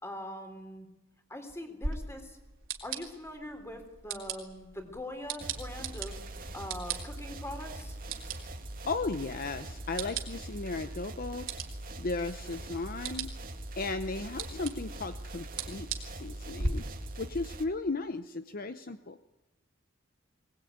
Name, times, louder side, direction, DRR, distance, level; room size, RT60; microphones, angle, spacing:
voice 1, 0.0-0.9 1.3-2.4 2.8-6.2 6.5-8.0, left 1 dB, 15° left, 6 dB, 3.7 m, -42 dB
sound 1, 1.8-16.7, right 4 dB, 70° right, 3.6 m, -41 dB
sound 2, 5.4-17.6, right 1 dB, 45° right, 2.2 m, -42 dB
voice 2, 8.9-11.5 12.0-13.3 13.8-16.8 17.2-19.2, left 3 dB, 45° left, 10 dB, 0.8 m, -35 dB
22.5 x 19.5 x 9.4 m, 1.0 s
head